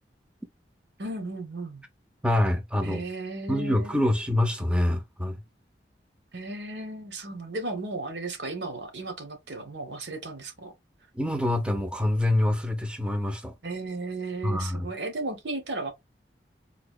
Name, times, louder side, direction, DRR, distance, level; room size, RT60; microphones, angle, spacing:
voice 1, 1.0-1.8 2.8-4.0 6.3-10.7 13.6-15.9, right 2 dB, 85° right, 1.1 m, -35 dB
voice 2, 2.2-3.1 3.5-5.4 11.2-13.5 14.4-14.9, left 1 dB, 5° right, 0.6 m, -25 dB
3.9 x 2.8 x 2.4 m
head